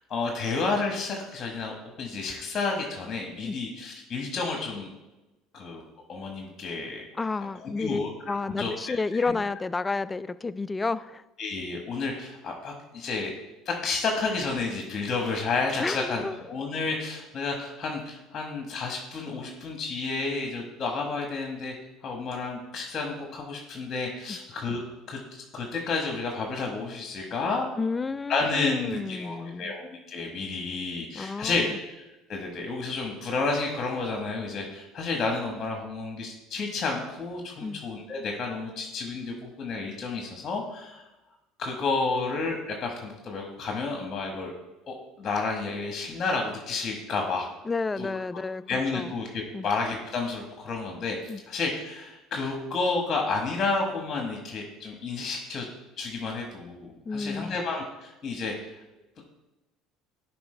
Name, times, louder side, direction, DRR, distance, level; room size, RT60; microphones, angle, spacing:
voice 1, 0.1-4.9 5.5-5.8 6.1-7.0 7.6-8.7 9.1-9.3 11.4-13.3 13.6-21.7 22.0-24.8 25.1-27.7 28.3-32.0 32.3-41.0 41.6-44.5 44.9-47.5 48.0-48.1 48.7-55.6 56.0-58.7, left 3 dB, 40° left, 2 dB, 1.4 m, -31 dB
voice 2, 7.1-11.2 15.8-16.4 24.3-24.4 27.8-29.7 31.1-31.8 37.6-37.8 47.6-49.1 49.5-49.7 51.3-51.4 57.0-57.6, left 4 dB, 20° left, 16 dB, 0.3 m, -31 dB
11.0 x 4.8 x 3.3 m, 1.0 s
hypercardioid pair, 70°, 0 cm